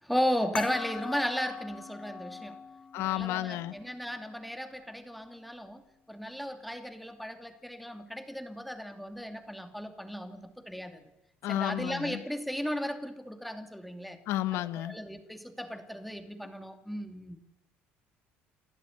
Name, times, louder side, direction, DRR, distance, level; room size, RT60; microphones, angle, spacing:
voice 1, 0.0-2.6 3.0-5.8 6.1-11.1 11.5-14.2 14.5-17.4, equal, ahead, 6 dB, 2.6 m, -35 dB
sound 1, 0.6-5.6, left 5 dB, 30° left, 0.9 m, -43 dB
voice 2, 2.9-3.7 11.4-12.2 14.3-15.0, left 14 dB, 75° left, 13 dB, 1.3 m, -32 dB
29.5 x 12.0 x 9.8 m, 0.92 s
cardioid pair, 115°, 4 cm